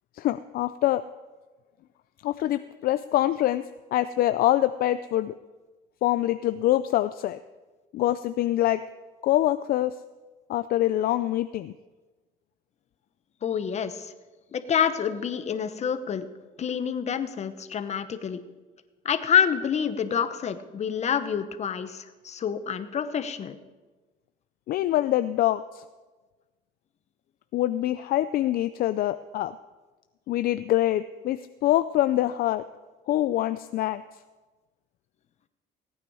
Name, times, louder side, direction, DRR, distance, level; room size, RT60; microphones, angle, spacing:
voice 1, 0.2-1.0 2.2-3.6 3.9-5.3 6.0-7.4 7.9-8.8 9.2-9.9 10.5-11.7 24.7-25.8 27.5-29.5 30.3-32.6 33.1-34.0, left 14 dB, 60° left, 12 dB, 0.4 m, -25 dB
voice 2, 13.4-14.1 14.5-16.3 16.6-18.4 19.0-23.6, left 8 dB, 40° left, 11 dB, 0.9 m, -27 dB
17.0 x 9.3 x 4.8 m, 1.2 s
cardioid pair, 110°, 17 cm